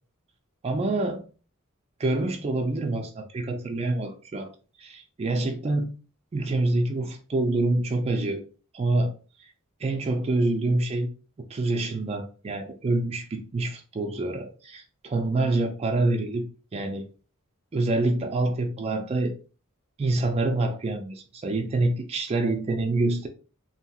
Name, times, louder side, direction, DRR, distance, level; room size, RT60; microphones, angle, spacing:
voice 1, 0.6-1.2 2.0-4.5 4.8-5.9 6.3-8.4 8.7-9.1 9.4-9.5 9.8-11.1 11.5-16.5 16.7-17.0 17.7-19.3 20.0-23.3, right 2 dB, 30° right, 0.3 m, -26 dB
2.8 x 2.8 x 2.3 m
head